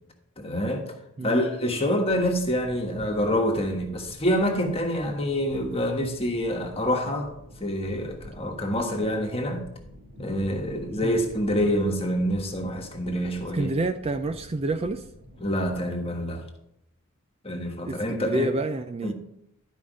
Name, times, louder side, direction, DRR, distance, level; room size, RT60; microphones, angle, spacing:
voice 1, 0.4-0.9 1.2-7.3 7.6-9.7 10.2-13.7 15.4-16.4 17.4-18.5 19.0-19.1, equal, 25° left, 1.4 m, -26 dB
sound 1, 2.1-15.8, equal, 80° right, 3.0 m, -47 dB
voice 2, 13.5-15.0 17.8-19.1, right 2 dB, 25° right, 0.4 m, -28 dB
12.0 x 5.0 x 5.1 m
head